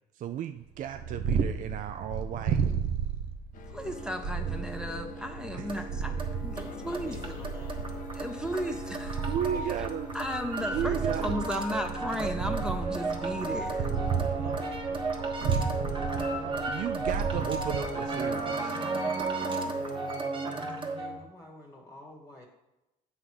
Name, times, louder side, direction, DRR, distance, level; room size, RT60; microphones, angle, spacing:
voice 1, 0.2-2.6 5.5-5.7 9.3-10.1 10.7-11.4 16.7-18.8, right 9 dB, 50° right, 9 dB, 0.4 m, -34 dB
Purr, 0.7-18.4, right 6 dB, 75° right, 0.8 m, -33 dB
sound 1, 3.5-20.2, left 9 dB, 55° left, 0.6 m, -49 dB
voice 2, 3.7-6.2 6.4-7.2 8.1-9.3 10.1-13.9, equal, 5° right, 5 dB, 0.7 m, -35 dB
sound 2, 3.8-21.2, right 3 dB, 30° right, 1.3 m, -34 dB
voice 3, 6.5-7.9 9.5-9.9 10.7-13.0 14.2-15.5 20.9-22.5, left 1 dB, 20° left, -1 dB, 1.2 m, -49 dB
7.9 x 3.9 x 6.1 m, 0.96 s
cardioid pair, 110°, 17 cm